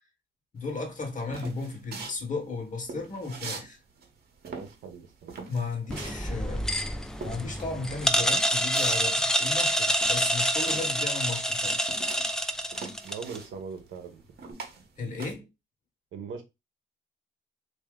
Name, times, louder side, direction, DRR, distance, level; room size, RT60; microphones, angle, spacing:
voice 1, 0.5-3.8 5.5-11.8 15.0-15.5, left 3 dB, 40° left, 1.3 m, -35 dB
sound 1, 0.7-3.7 4.0-11.0 11.3-15.4, right 4 dB, 55° right, 1.1 m, -42 dB
voice 2, 4.4-5.4 10.9-11.1 13.0-14.2 16.1-16.4, right 5 dB, 80° right, 0.9 m, -41 dB
sound 2, 5.9-13.4, equal, 5° left, 0.4 m, -27 dB
2.8 x 2.7 x 3.7 m
cardioid pair, 90°, 20 cm